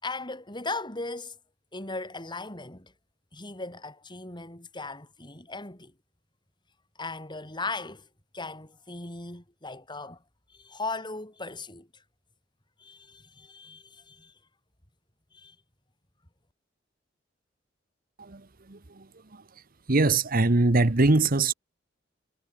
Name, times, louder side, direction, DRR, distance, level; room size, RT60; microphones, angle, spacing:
voice 1, 0.0-1.4 1.7-2.9 3.3-5.9 7.0-8.1 8.3-10.2 10.5-12.0 12.8-14.3 15.3-15.6, left 3 dB, 25° left, 7.4 m, -38 dB
voice 2, 18.2-19.4 19.9-21.5, right 2 dB, 50° right, 1.2 m, -23 dB
head